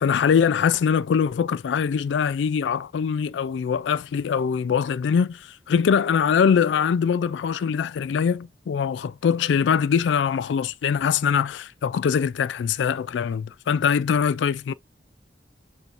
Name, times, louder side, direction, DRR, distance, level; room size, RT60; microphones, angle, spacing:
voice 1, 0.0-14.7, left 7 dB, 85° left, 0.3 m, -23 dB
6.8 x 3.0 x 2.5 m
head